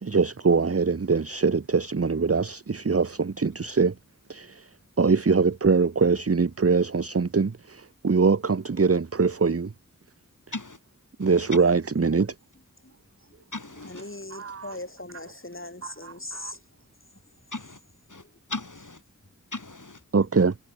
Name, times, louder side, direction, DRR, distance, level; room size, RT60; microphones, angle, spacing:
voice 1, 0.0-4.0 4.3-9.7 11.2-12.3 14.3-14.7 16.0-16.5 20.1-20.6, right 4 dB, 45° right, 0.9 m, -23 dB
voice 2, 11.2-11.6 13.5-14.0 17.5-17.8 18.1-19.0 19.5-20.0, left 2 dB, 65° left, 6.9 m, -37 dB
voice 3, 13.8-16.6 18.1-18.4, left 2 dB, 40° left, 6.6 m, -40 dB
wide cardioid pair, 45°, 33 cm